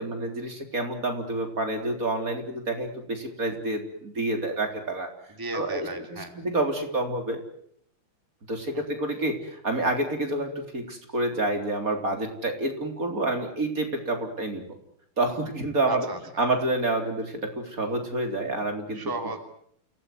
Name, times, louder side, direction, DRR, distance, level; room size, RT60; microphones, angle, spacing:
voice 1, 0.0-5.1 5.5-7.4 8.5-14.6 15.2-16.1 16.4-19.0, right 2 dB, 40° right, 4 dB, 4.2 m, -28 dB
voice 2, 5.4-6.3 8.7-8.8 15.8-16.4 18.9-19.4, right 2 dB, 10° right, 5 dB, 3.0 m, -34 dB
28.5 x 18.5 x 9.6 m, 0.66 s
omnidirectional pair, 2.3 m